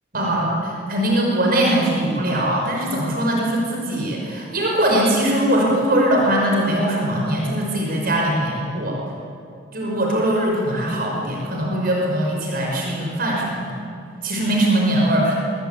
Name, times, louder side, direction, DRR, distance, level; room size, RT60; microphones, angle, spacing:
voice 1, 0.1-9.0 9.7-13.8 14.2-15.4, right 1 dB, 50° right, -1 dB, 5.7 m, -21 dB
24.5 x 23.5 x 9.4 m, 2.4 s
head